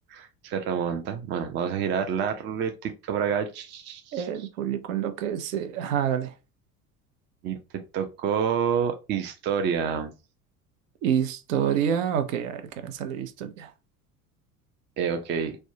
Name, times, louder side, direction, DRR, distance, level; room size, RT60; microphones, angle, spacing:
voice 1, 0.1-4.5 7.4-7.6 7.9-10.1 15.0-15.6, right 7 dB, 25° right, 0.5 m, -28 dB
voice 2, 4.1-6.3 11.0-13.7, right 9 dB, 60° right, 0.7 m, -28 dB
3.4 x 2.1 x 2.7 m
figure-of-eight pair, 70°, 45 cm